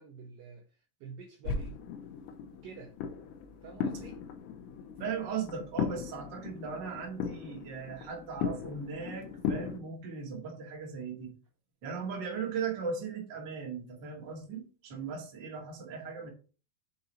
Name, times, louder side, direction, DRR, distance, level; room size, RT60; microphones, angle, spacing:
voice 1, 0.0-1.8 2.6-2.9 3.6-4.2, right 6 dB, 80° right, 2.1 m, -48 dB
sound 1, 1.5-9.8, left 6 dB, 85° left, 2.8 m, -38 dB
voice 2, 5.0-11.3 11.8-16.3, right 5 dB, 45° right, 1.5 m, -38 dB
6.8 x 3.9 x 4.2 m
omnidirectional pair, 4.8 m